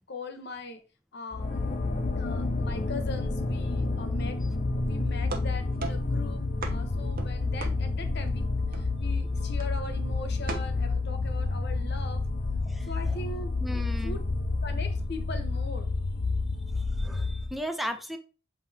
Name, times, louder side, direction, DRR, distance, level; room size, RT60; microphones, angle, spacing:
voice 1, 0.1-0.8 1.1-1.7 2.1-4.4 4.8-6.4 6.7-8.5 8.7-12.2 12.9-13.5 14.0-14.2 14.6-15.9, left 2 dB, 55° left, 1.0 m, -40 dB
sound 1, 1.3-17.6, left 3 dB, 40° left, 0.6 m, -29 dB
sound 2, 5.2-8.4 8.7-9.2 9.6-9.9 10.5-10.7, right 3 dB, 50° right, 0.8 m, -39 dB
voice 2, 13.6-14.2 17.0-18.2, equal, ahead, 0.6 m, -35 dB
7.7 x 2.9 x 4.1 m
head